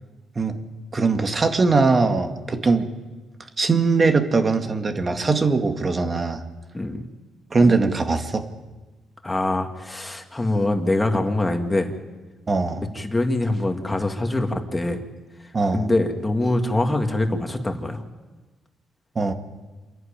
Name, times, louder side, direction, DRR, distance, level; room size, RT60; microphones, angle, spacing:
voice 1, 0.9-2.9 3.6-6.4 7.5-8.4 12.5-12.8 15.5-15.9 19.2-19.3, right 4 dB, 30° right, 6 dB, 2.0 m, -21 dB
voice 2, 9.2-11.9 12.9-15.0 15.7-18.0, left 2 dB, 15° left, 4 dB, 2.4 m, -24 dB
28.0 x 11.0 x 9.0 m, 1.2 s
cardioid pair, 90°, 0 cm